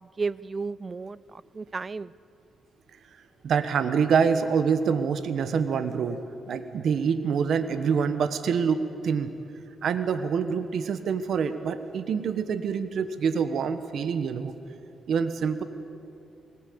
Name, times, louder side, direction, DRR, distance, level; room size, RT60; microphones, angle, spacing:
voice 1, 0.0-2.1, right 4 dB, 35° right, 19 dB, 0.5 m, -33 dB
voice 2, 3.4-6.2 6.5-9.3 9.8-14.5 15.1-15.6, right 6 dB, 70° right, 10 dB, 1.2 m, -26 dB
20.5 x 19.5 x 8.6 m, 2.6 s
cardioid pair, 85°, 0 cm